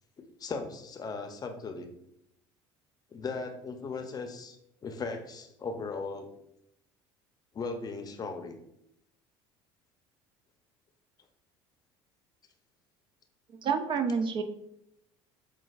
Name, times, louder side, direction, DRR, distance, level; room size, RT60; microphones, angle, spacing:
voice 1, 0.2-1.9 3.1-4.6 4.8-6.3 7.5-8.5, left 4 dB, 30° left, 6 dB, 0.6 m, -37 dB
voice 2, 13.6-14.4, right 6 dB, 45° right, 8 dB, 0.4 m, -28 dB
5.8 x 2.4 x 2.4 m, 0.79 s
supercardioid pair, 80°, 12 cm